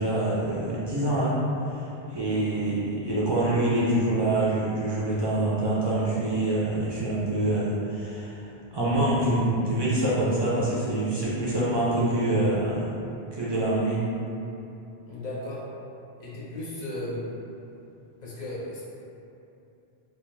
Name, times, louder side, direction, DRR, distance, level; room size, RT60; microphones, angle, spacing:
voice 1, 0.0-1.4 2.1-8.4 8.7-12.9 13.3-14.0, right 1 dB, 45° right, -9 dB, 0.3 m, -25 dB
voice 2, 15.0-15.6 16.2-17.3 18.2-18.8, left 1 dB, 55° left, -7 dB, 0.6 m, -35 dB
2.3 x 2.2 x 3.1 m, 2.8 s
omnidirectional pair, 1.0 m